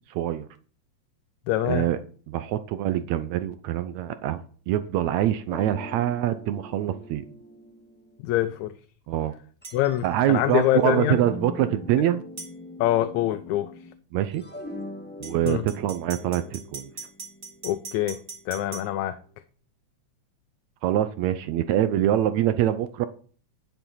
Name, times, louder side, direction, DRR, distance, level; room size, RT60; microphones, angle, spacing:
voice 1, 0.1-0.5 1.7-2.0 2.3-7.2 9.1-9.3 10.0-12.2 14.1-14.4 15.2-16.9 20.8-23.1, right 12 dB, 75° right, 1.9 m, -25 dB
voice 2, 1.5-1.9 8.2-8.7 9.7-11.2 12.8-13.7 15.5-15.6 17.6-18.2 18.5-19.2, left 13 dB, 80° left, 2.0 m, -24 dB
sound 1, 5.5-8.6 9.6-13.9 14.2-18.4, left 1 dB, 5° left, 0.7 m, -41 dB
sound 2, 9.6-9.8 12.4-12.5 15.2-18.9, right 4 dB, 30° right, 3.9 m, -40 dB
10.5 x 6.9 x 5.6 m
omnidirectional pair, 3.3 m